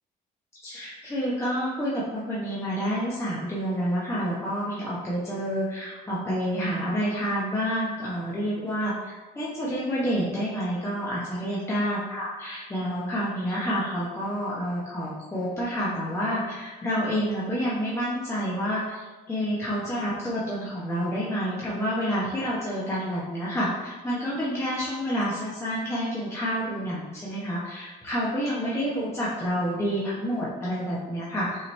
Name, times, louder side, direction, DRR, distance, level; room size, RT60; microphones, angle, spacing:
voice 1, 0.6-31.7, equal, 15° left, -7 dB, 0.9 m, -29 dB
5.6 x 2.9 x 3.2 m, 1.2 s
cardioid pair, 110°, 17 cm